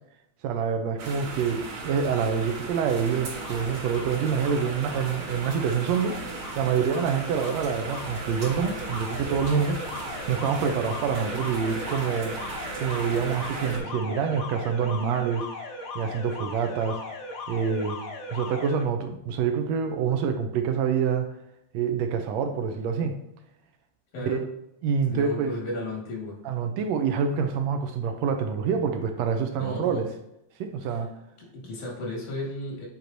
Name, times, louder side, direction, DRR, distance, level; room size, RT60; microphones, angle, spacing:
voice 1, 0.4-9.9 10.3-12.4 12.8-15.5 16.0-17.0 17.5-18.0 18.3-21.3 21.7-23.2 24.2-24.5 24.8-25.5 26.5-30.1 30.6-31.1, right 6 dB, 75° right, 6 dB, 1.7 m, -26 dB
sound 1, 1.0-13.8, right 3 dB, 60° right, 2.8 m, -37 dB
Alarm, 3.2-18.8, left 3 dB, 60° left, 1.5 m, -39 dB
voice 2, 25.1-26.4 29.6-30.0 30.9-31.0 31.4-32.9, left 1 dB, 85° left, -2 dB, 3.2 m, -34 dB
8.3 x 4.4 x 2.6 m, 0.80 s
omnidirectional pair, 3.4 m